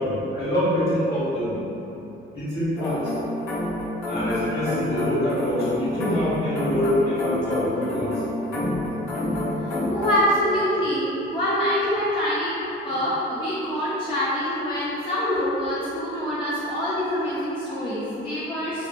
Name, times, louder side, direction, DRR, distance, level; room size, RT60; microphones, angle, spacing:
voice 1, 0.0-1.6 2.3-3.1 4.1-8.2, left 1 dB, 55° left, -10 dB, 1.2 m, -25 dB
sound 1, 2.8-10.2, left 1 dB, 80° left, 0.9 m, -28 dB
voice 2, 9.9-12.6 12.8-18.9, equal, 25° left, -10 dB, 0.5 m, -25 dB
2.6 x 2.1 x 2.5 m, 2.9 s
cardioid pair, 90°, 20 cm